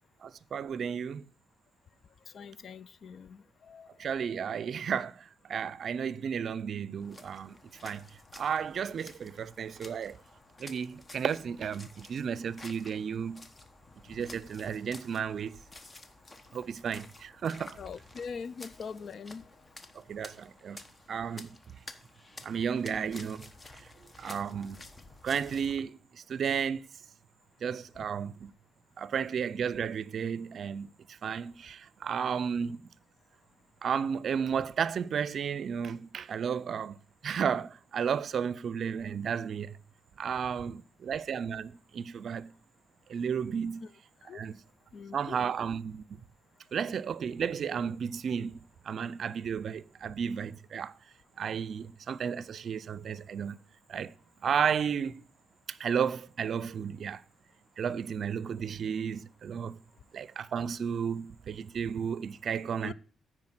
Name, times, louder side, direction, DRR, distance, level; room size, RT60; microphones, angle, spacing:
voice 1, 0.2-1.2 4.0-7.6 7.8-8.0 8.3-10.2 10.6-13.5 14.1-15.6 16.5-17.8 20.1-20.8 21.1-21.5 22.4-23.5 24.2-24.8 25.2-26.8 27.6-28.5 29.0-32.8 33.8-37.0 37.2-39.8 40.2-42.5 43.1-43.9 44.3-44.6 45.1-46.0 46.7-50.9 51.4-53.6 53.9-54.1 54.4-55.2 55.7-57.2 57.8-59.8 60.1-62.9, right 7 dB, 65° right, 0.4 m, -33 dB
voice 2, 2.3-3.9 4.2-4.3 17.8-19.4 43.8-43.9 44.2-44.4 44.9-45.4 62.8-62.9, left 6 dB, 60° left, 0.4 m, -42 dB
sound 1, 7.0-25.8, left 2 dB, 30° left, 1.1 m, -52 dB
9.6 x 4.7 x 7.7 m
cardioid pair, 70°, 0 cm